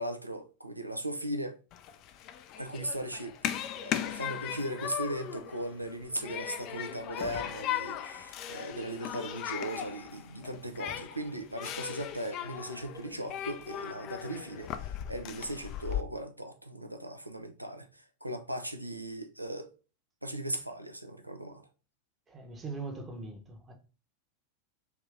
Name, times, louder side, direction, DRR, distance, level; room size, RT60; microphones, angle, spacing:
voice 1, 0.0-1.6 2.6-3.3 3.8-19.7 20.2-21.7, right 1 dB, 90° right, 0.5 m, -38 dB
Human group actions, 1.7-16.0, left 10 dB, 40° left, 0.3 m, -38 dB
voice 2, 22.3-23.7, right 3 dB, 20° right, 0.9 m, -41 dB
3.5 x 2.8 x 3.4 m
figure-of-eight pair, 90°, 0 cm